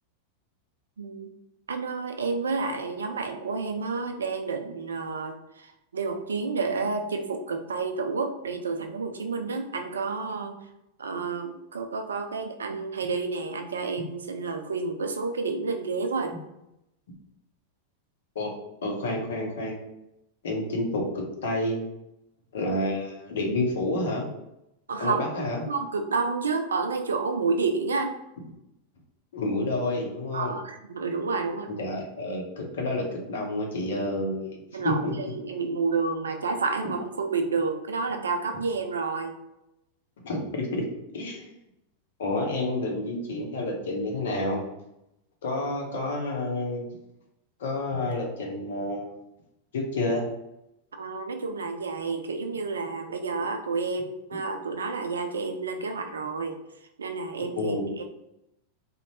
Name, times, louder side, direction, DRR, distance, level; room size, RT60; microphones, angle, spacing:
voice 1, 1.0-1.3 1.7-10.7 11.0-16.3 24.9-25.2 25.6-28.2 30.3-31.7 34.7-39.3 51.0-56.6 57.0-58.0, right 4 dB, 70° right, 5 dB, 0.3 m, -30 dB
voice 2, 18.8-19.8 20.4-21.8 22.5-24.3 25.0-25.6 29.3-30.6 31.8-35.1 40.2-40.8 41.1-41.5 42.2-44.6 45.4-46.8 47.6-49.2 49.7-50.3 57.6-57.9, left 2 dB, 60° left, 1 dB, 0.7 m, -29 dB
2.6 x 2.0 x 3.0 m, 0.86 s
figure-of-eight pair, 90°, 0 cm